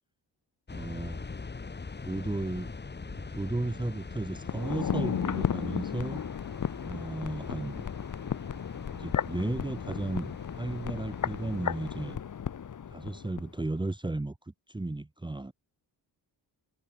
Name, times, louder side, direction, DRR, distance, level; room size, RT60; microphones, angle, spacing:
sound 1, 0.7-12.2, left 4 dB, 25° left, 1.6 m, -43 dB
voice 1, 0.7-1.3 2.0-2.7 3.3-6.2 6.8-7.8 8.9-12.2 12.9-14.4 14.7-15.5, right 2 dB, 10° right, 1.2 m, -34 dB
sound 2, 3.0-12.7, right 4 dB, 35° right, 5.5 m, -58 dB
sound 3, 4.4-13.5 13.8-13.9, left 8 dB, 45° left, 1.2 m, -34 dB
wide cardioid pair, 125°, 41 cm